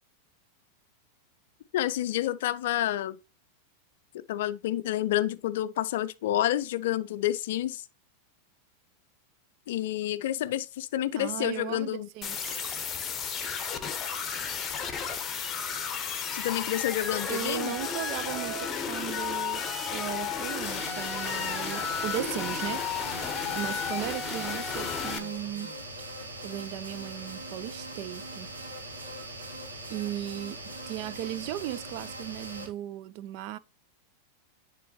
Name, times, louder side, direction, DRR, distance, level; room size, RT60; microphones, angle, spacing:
voice 1, 1.7-3.2 4.1-7.9 9.7-12.1 16.3-17.8, left 13 dB, 55° left, 0.4 m, -29 dB
voice 2, 11.1-12.7 17.3-19.7 19.9-23.2 23.5-25.7 26.4-28.5 29.9-33.6, right 13 dB, 45° right, 0.4 m, -37 dB
sound 1, 12.2-25.2, left 6 dB, 25° left, 0.9 m, -33 dB
sound 2, 20.6-32.7, right 1 dB, 75° right, 1.5 m, -41 dB
10.0 x 3.7 x 2.9 m
figure-of-eight pair, 90°, 0 cm